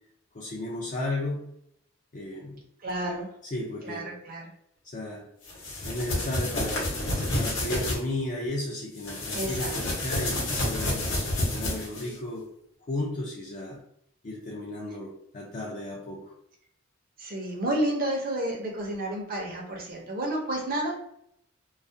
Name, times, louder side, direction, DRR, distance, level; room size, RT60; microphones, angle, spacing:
voice 1, 0.3-1.4 2.1-2.6 3.4-4.1 4.8-5.3 5.8-6.9 7.4-12.5 12.9-13.8 14.2-16.3, left 1 dB, 40° left, -3 dB, 0.4 m, -34 dB
voice 2, 2.8-3.3 3.8-4.4 9.3-9.7 17.2-21.0, right 1 dB, 45° right, 0 dB, 0.5 m, -30 dB
sound 1, 5.5-8.0 9.0-12.1, left 1 dB, 65° left, 0.8 m, -29 dB
2.3 x 2.1 x 2.5 m, 0.72 s
head